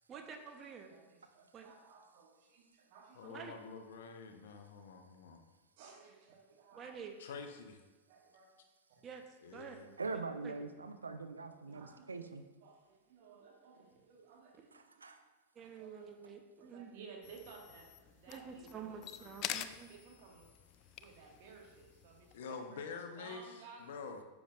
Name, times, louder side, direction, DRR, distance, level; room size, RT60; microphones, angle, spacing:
voice 1, 0.1-0.9 1.5-1.6 3.2-3.5 6.7-7.1 9.0-9.2 9.5-9.8 10.4-10.5 15.6-16.9 18.3-19.9, right 7 dB, 25° right, 4 dB, 0.9 m, -48 dB
voice 2, 0.9-3.3 5.8-7.0 8.1-8.5 11.7-12.2 12.6-14.8 15.6-16.1 16.6-20.5 21.0-22.8 23.2-24.1, right 5 dB, 50° right, 0 dB, 1.7 m, -57 dB
voice 3, 3.1-5.4 7.2-7.8 9.4-10.0 22.3-24.2, left 5 dB, 60° left, 6 dB, 0.9 m, -47 dB
voice 4, 10.0-12.4 14.7-15.2, right 4 dB, 75° right, 8 dB, 0.6 m, -43 dB
sound 1, 17.2-22.4, left 11 dB, 40° left, 0.4 m, -47 dB
10.0 x 7.2 x 2.5 m, 1.2 s
figure-of-eight pair, 90°, 0 cm